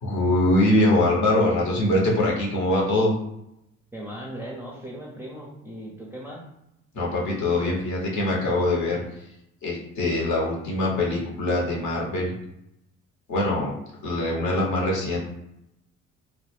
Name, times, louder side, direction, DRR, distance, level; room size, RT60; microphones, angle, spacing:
voice 1, 0.0-3.1 6.9-9.0 9.6-12.3 13.3-13.8 14.0-15.2, left 1 dB, 50° left, -3 dB, 0.9 m, -23 dB
voice 2, 3.9-6.5, right 1 dB, 5° right, -3 dB, 0.5 m, -38 dB
2.3 x 2.1 x 3.3 m, 0.83 s
figure-of-eight pair, 50°, 37 cm